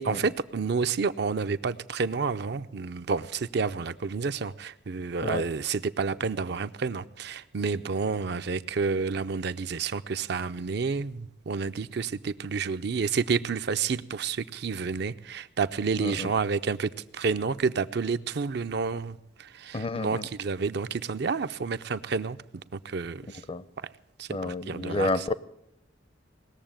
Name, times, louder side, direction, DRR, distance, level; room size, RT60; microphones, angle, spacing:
voice 1, 0.0-22.4 22.7-23.4 23.8-23.9 24.2-25.2, right 5 dB, 60° right, 11 dB, 0.5 m, -30 dB
voice 2, 16.0-16.3 19.7-20.3 23.5-23.6 24.3-25.3, left 2 dB, 30° left, 16 dB, 0.5 m, -30 dB
19.5 x 7.1 x 8.9 m, 0.82 s
head